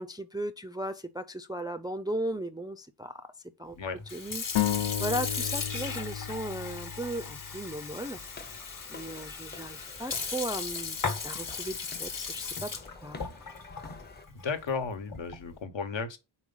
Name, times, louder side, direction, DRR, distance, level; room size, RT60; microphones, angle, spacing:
voice 1, 0.0-3.3 3.6-3.8 4.1-8.5 8.9-11.0 11.2-13.2, right 1 dB, 10° right, 0.3 m, -36 dB
Sink (filling or washing) / Fill (with liquid), 4.0-15.5, left 5 dB, 45° left, 1.1 m, -37 dB
sound 1, 4.6-8.2, left 11 dB, 90° left, 0.7 m, -33 dB
sound 2, 8.0-14.3, left 3 dB, 20° left, 0.6 m, -50 dB
voice 2, 14.3-16.2, left 5 dB, 70° left, 1.2 m, -34 dB
4.7 x 4.3 x 5.4 m
wide cardioid pair, 140°, 46 cm